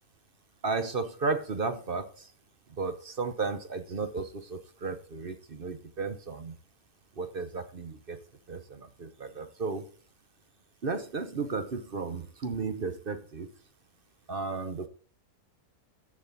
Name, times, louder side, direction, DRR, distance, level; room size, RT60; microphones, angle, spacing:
voice 1, 0.6-2.3 2.7-6.6 7.2-9.9 10.8-13.5 14.3-14.9, right 4 dB, 45° right, 9 dB, 0.9 m, -34 dB
14.0 x 7.4 x 3.9 m, 0.43 s
omnidirectional pair, 1.6 m